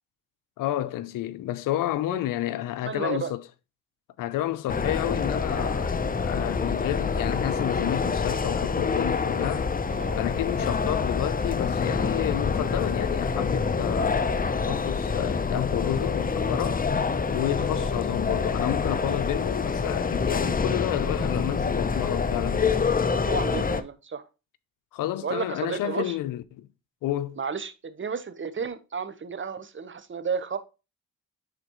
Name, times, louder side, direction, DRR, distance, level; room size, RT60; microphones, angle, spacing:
voice 1, 0.6-3.4 4.2-9.7 10.1-16.8 17.3-23.0 24.9-26.7 27.0-27.4, left 13 dB, 90° left, 0.7 m, -30 dB
voice 2, 2.8-3.3 9.9-10.1 17.8-17.9 23.1-24.2 25.2-26.2 27.4-30.6, right 6 dB, 40° right, 1.0 m, -32 dB
sound 1, 4.7-23.8, left 5 dB, 25° left, 0.7 m, -26 dB
10.0 x 4.1 x 3.0 m
cardioid pair, 60°, 31 cm